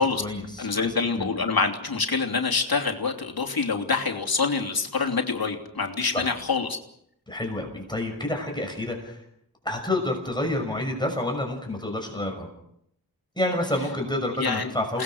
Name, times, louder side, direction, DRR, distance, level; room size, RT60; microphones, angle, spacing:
voice 1, 0.0-1.3 6.1-6.3 7.3-9.2 9.6-12.5 13.4-15.0, left 1 dB, 10° left, 1 dB, 6.0 m, -29 dB
voice 2, 0.6-6.8 14.4-14.7 14.9-15.0, left 4 dB, 70° left, 3 dB, 3.1 m, -26 dB
29.0 x 19.0 x 6.5 m, 0.74 s
wide cardioid pair, 85°, 37 cm